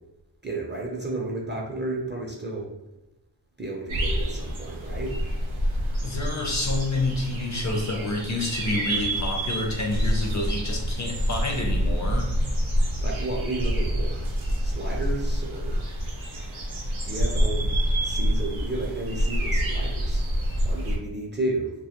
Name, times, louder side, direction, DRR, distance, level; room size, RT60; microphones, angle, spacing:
voice 1, 0.4-2.7 3.6-5.2 13.0-14.3 14.6-15.8 17.1-17.7 18.0-20.2 20.6-21.7, right 2 dB, 25° right, -2 dB, 0.4 m, -32 dB
sound 1, 3.9-21.0, equal, 85° right, 0.6 m, -27 dB
voice 2, 6.0-12.3, left 2 dB, 40° left, 0 dB, 0.5 m, -28 dB
2.3 x 2.0 x 2.8 m, 0.97 s
wide cardioid pair, 60°, 47 cm